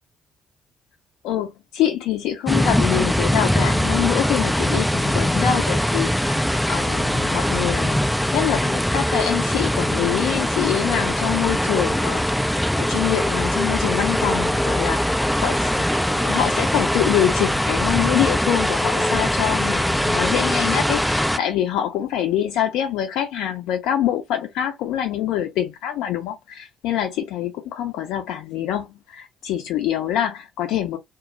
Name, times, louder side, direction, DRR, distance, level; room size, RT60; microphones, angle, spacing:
voice 1, 1.2-8.0 8.3-15.6 16.0-31.0, left 11 dB, 60° left, 0.6 m, -25 dB
sound 1, 2.5-21.4, equal, 5° left, 0.3 m, -21 dB
2.2 x 2.1 x 3.8 m
figure-of-eight pair, 45°, 0 cm